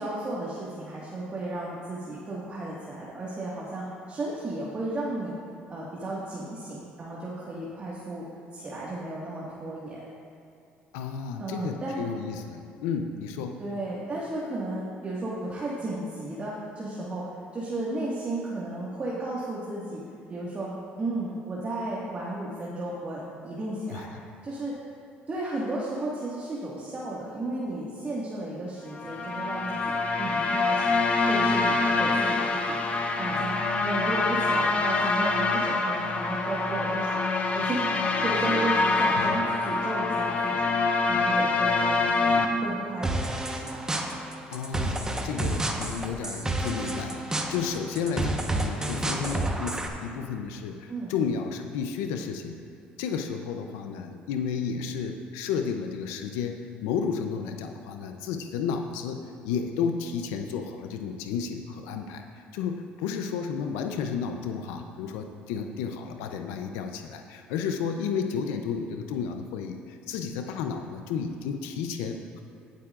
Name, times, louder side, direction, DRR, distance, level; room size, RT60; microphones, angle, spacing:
voice 1, 0.0-5.4 5.7-10.0 11.4-12.0 13.6-20.0 20.3-24.1 24.4-24.8 25.3-29.8 30.2-32.8 33.2-33.5 33.8-37.2 37.6-40.7 41.0-43.8 50.9-51.1, right 2 dB, 35° right, -6 dB, 1.7 m, -34 dB
voice 2, 10.9-13.6 23.9-24.1 39.2-39.4 44.5-52.6 53.0-62.2 62.5-72.4, left 6 dB, 85° left, 5 dB, 0.6 m, -32 dB
sound 1, 29.0-42.5, left 3 dB, 35° left, 1.0 m, -25 dB
sound 2, 43.0-49.9, right 2 dB, 15° right, 1.1 m, -30 dB
19.5 x 7.6 x 2.5 m, 2.5 s
supercardioid pair, 85°, 4 cm